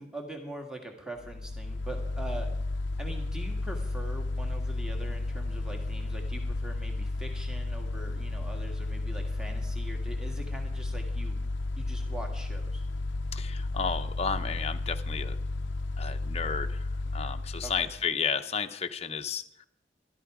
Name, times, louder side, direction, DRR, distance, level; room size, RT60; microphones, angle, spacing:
voice 1, 0.0-2.5 3.0-11.4 11.8-12.8 17.6-17.9, right 2 dB, 5° right, 2 dB, 1.7 m, -43 dB
Mechanical fan, 1.2-18.1, left 2 dB, 75° left, 0.5 m, -33 dB
voice 2, 13.3-15.4 16.0-19.7, left 6 dB, 35° left, 7 dB, 0.7 m, -33 dB
14.0 x 12.5 x 4.8 m, 0.73 s
head